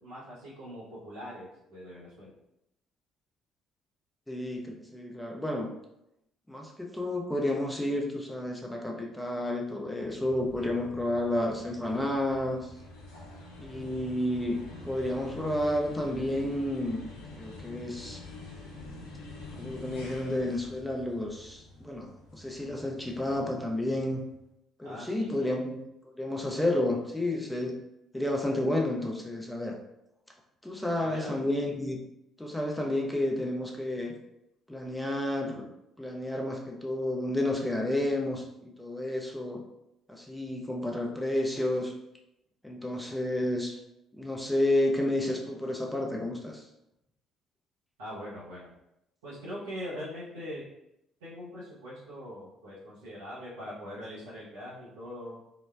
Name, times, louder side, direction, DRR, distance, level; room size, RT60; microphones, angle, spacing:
voice 1, 0.0-2.3 24.8-25.5 31.0-31.4 48.0-48.7 49.2-50.6 51.2-55.4, equal, 80° right, -10 dB, 0.7 m, -42 dB
voice 2, 4.3-5.7 6.5-12.7 13.6-14.6 14.8-17.0 17.4-18.2 19.5-22.1 22.3-24.2 24.8-25.8 26.0-27.7 28.1-29.8 30.6-32.0 32.4-34.1 34.7-35.7 36.0-39.6 40.1-41.9 42.6-43.7 44.1-46.6, left 1 dB, 5° left, 0 dB, 0.6 m, -31 dB
sound 1, 9.8-24.3, left 2 dB, 75° left, 0.5 m, -47 dB
3.9 x 2.1 x 2.2 m, 0.84 s
figure-of-eight pair, 50°, 0 cm